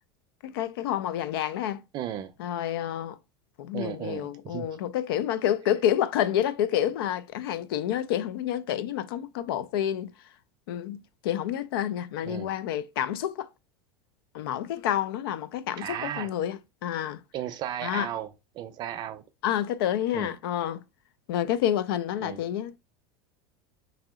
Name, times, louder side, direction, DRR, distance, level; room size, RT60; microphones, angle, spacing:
voice 1, 0.4-1.8 2.4-3.2 3.6-10.1 10.7-11.0 11.2-13.5 14.3-17.2 17.8-18.1 19.4-20.8 21.3-22.8, left 11 dB, 80° left, 0.4 m, -29 dB
voice 2, 1.9-2.3 3.7-4.7 12.2-12.5 15.8-16.3 17.3-19.2 20.1-20.4 22.2-22.4, right 11 dB, 40° right, 0.5 m, -35 dB
2.9 x 2.9 x 3.6 m
supercardioid pair, 135°, 12 cm